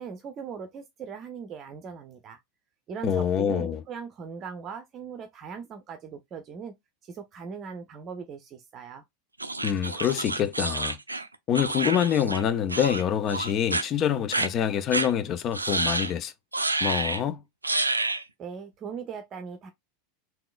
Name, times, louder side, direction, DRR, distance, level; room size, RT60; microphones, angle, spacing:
voice 1, 0.0-2.4 2.9-6.7 7.0-9.0 18.4-19.7, right 6 dB, 35° right, 0.6 m, -39 dB
voice 2, 3.0-3.8 9.6-11.0 11.5-16.3 16.8-17.4, left 9 dB, 35° left, 0.5 m, -26 dB
sound 1, 9.4-12.4 12.7-13.0 13.3-13.8 14.3-14.5 14.9-15.1 15.5-16.1 16.5-17.2 17.6-18.2, right 2 dB, 85° right, 0.3 m, -28 dB
3.7 x 2.8 x 2.3 m
figure-of-eight pair, 85°, 0 cm